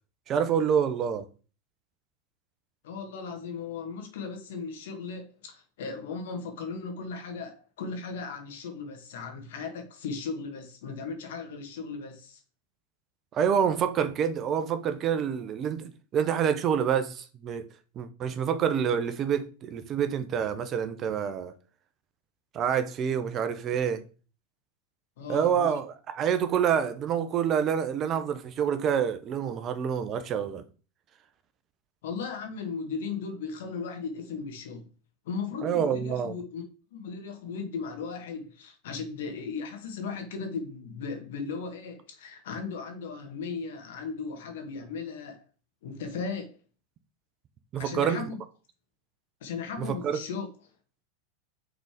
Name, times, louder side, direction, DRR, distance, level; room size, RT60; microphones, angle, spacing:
voice 1, 0.3-1.3 13.3-17.7 18.0-21.5 22.5-24.0 25.3-30.6 35.6-36.4 47.7-48.2 49.8-50.2, right 8 dB, 35° right, 0.9 m, -27 dB
voice 2, 2.8-12.4 25.2-25.7 32.0-34.9 35.3-36.6 36.9-45.4 45.8-46.6 47.8-48.4 49.4-50.5, left 5 dB, 70° left, 1.8 m, -37 dB
6.1 x 4.1 x 5.0 m
hypercardioid pair, 105°, 0 cm